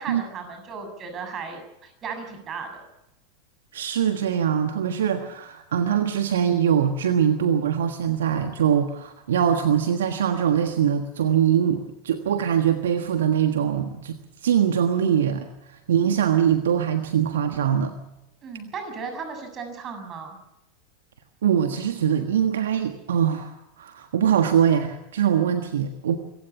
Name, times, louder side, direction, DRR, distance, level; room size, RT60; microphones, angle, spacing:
voice 1, 0.0-2.8 18.4-20.4, right 5 dB, 30° right, 6 dB, 7.1 m, -35 dB
voice 2, 3.7-17.9 21.4-26.2, right 8 dB, 70° right, 7 dB, 1.4 m, -22 dB
26.0 x 16.0 x 7.0 m, 0.89 s
figure-of-eight pair, 85°, 0 cm